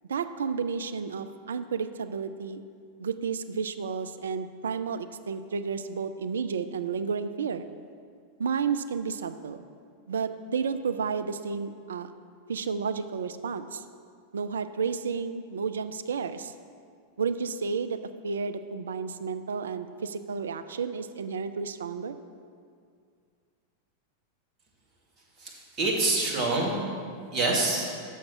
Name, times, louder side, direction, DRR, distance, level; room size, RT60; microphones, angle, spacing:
voice 1, 0.1-2.6 3.0-7.7 8.4-9.7 10.1-12.1 12.5-13.8 14.3-16.5 17.2-22.2, right 5 dB, 65° right, 10 dB, 0.3 m, -31 dB
voice 2, 25.4-26.8 27.3-27.9, right 2 dB, 30° right, -3 dB, 1.8 m, -26 dB
7.1 x 6.3 x 5.9 m, 2.2 s
figure-of-eight pair, 90°, 0 cm